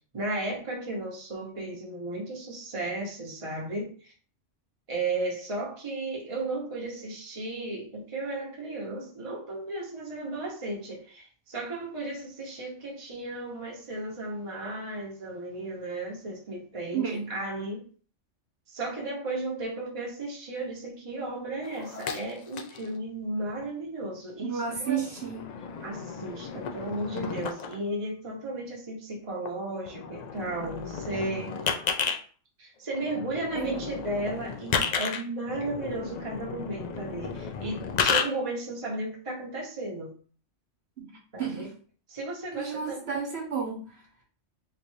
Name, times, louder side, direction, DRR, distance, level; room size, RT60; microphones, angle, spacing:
voice 1, 0.1-4.1 4.9-17.8 18.7-25.0 25.8-31.5 32.6-40.1 41.3-41.7 42.1-43.0, right 2 dB, 30° right, -3 dB, 1.0 m, -34 dB
voice 2, 16.9-17.3 24.4-25.4 33.5-33.8 41.0-41.7 42.5-43.9, right 6 dB, 60° right, -3 dB, 1.4 m, -32 dB
sound 1, 21.6-22.9 23.5-23.7 24.6-27.8 29.5-29.6 29.8-32.2 32.9-38.2, left 6 dB, 65° left, 0.4 m, -33 dB
3.1 x 2.6 x 4.4 m, 0.42 s
omnidirectional pair, 1.2 m